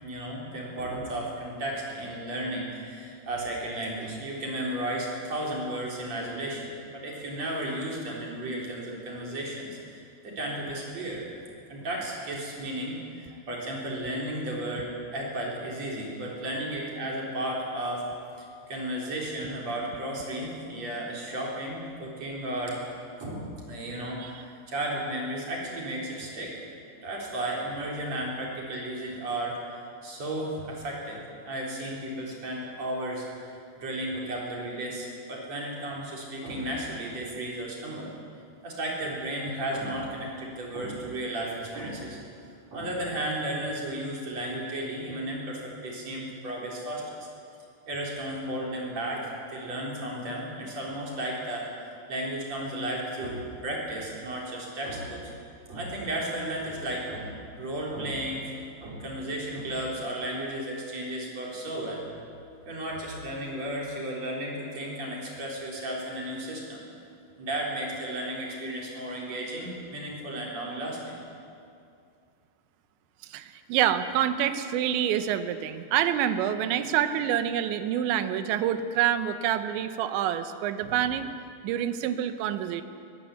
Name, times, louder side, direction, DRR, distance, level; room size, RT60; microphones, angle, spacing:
voice 1, 0.0-11.2 11.7-18.1 18.4-22.8 23.2-26.5 27.0-29.7 30.0-38.1 38.6-42.2 42.7-47.3 47.9-55.2 55.7-58.5 58.8-62.0 62.7-66.8 67.4-71.2 80.8-81.0, right 1 dB, 40° right, -3 dB, 4.9 m, -34 dB
voice 2, 73.3-81.3 81.6-82.8, right 10 dB, 90° right, 10 dB, 3.2 m, -27 dB
22.5 x 15.5 x 8.6 m, 2.5 s
omnidirectional pair, 5.1 m